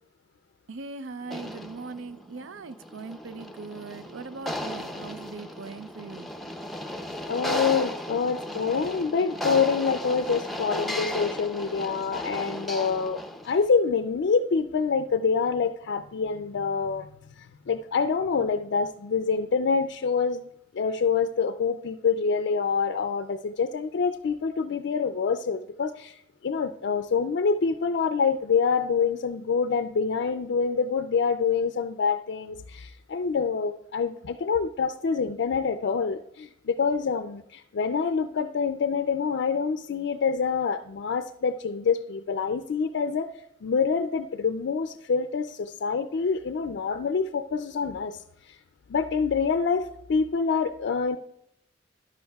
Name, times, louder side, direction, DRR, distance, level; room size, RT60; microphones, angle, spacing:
voice 1, 0.7-6.3, right 4 dB, 80° right, 0.5 m, -40 dB
sound 1, 1.2-13.6, left 1 dB, ahead, 0.5 m, -35 dB
voice 2, 7.3-17.1 17.4-20.5 20.7-43.3 43.6-48.6 48.9-51.2, left 5 dB, 60° left, 0.4 m, -26 dB
14.0 x 11.0 x 2.3 m
head